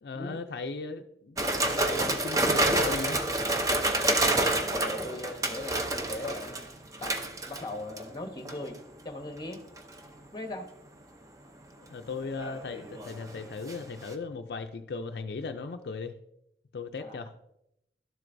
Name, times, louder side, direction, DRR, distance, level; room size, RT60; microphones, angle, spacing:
voice 1, 0.0-3.2 11.8-16.2 16.7-17.3, left 4 dB, 65° left, 6 dB, 0.4 m, -37 dB
sound 1, 1.4-8.1 8.5-8.8 9.5-10.0 12.2-13.8 14.1-14.2, right 2 dB, 20° right, 0.6 m, -28 dB
voice 2, 4.2-7.2 7.5-8.8 9.0-9.6 10.3-10.7 17.0-17.2, left 1 dB, 25° left, 5 dB, 0.9 m, -39 dB
12.0 x 7.5 x 2.6 m, 0.81 s
head